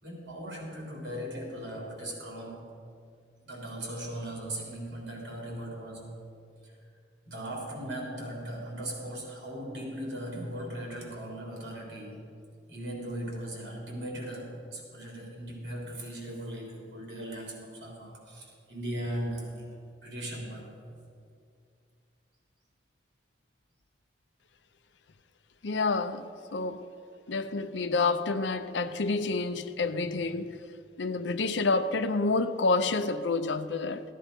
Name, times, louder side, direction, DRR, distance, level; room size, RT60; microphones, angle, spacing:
voice 1, 0.0-2.7 3.4-6.1 6.6-6.7 7.3-12.2 12.7-19.6 20.0-20.7, right 1 dB, 65° right, 3.5 m, -38 dB
voice 2, 25.6-26.9 27.3-30.6 31.0-34.0, left 3 dB, 75° left, 0.6 m, -28 dB
14.5 x 10.0 x 5.3 m
head